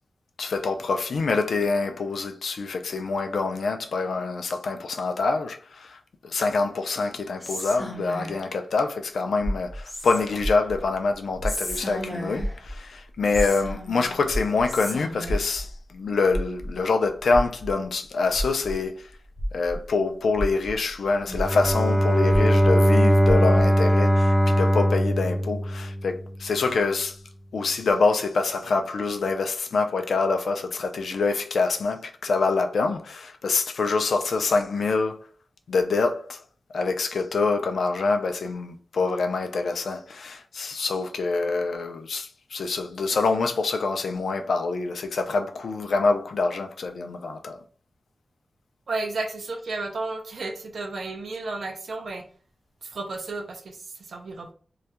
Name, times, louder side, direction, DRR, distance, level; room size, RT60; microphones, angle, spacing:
voice 1, 0.4-6.0 6.2-19.1 19.5-27.2 27.5-35.2 35.7-36.4 36.7-47.6, left 4 dB, 85° left, 0.3 m, -25 dB
Whispering, 7.4-8.5 9.8-10.5 11.4-12.6 13.3-14.2 14.7-15.5, equal, 30° left, 0.7 m, -35 dB
sound 1, 9.4-12.1 12.3-19.9 20.3-23.8, equal, 45° right, 1.1 m, -32 dB
Bowed string instrument, 21.3-26.3, equal, 5° right, 0.4 m, -20 dB
voice 2, 48.9-52.2 52.8-54.5, right 3 dB, 70° right, 0.4 m, -33 dB
2.3 x 2.1 x 2.8 m
wide cardioid pair, 150°, 0 cm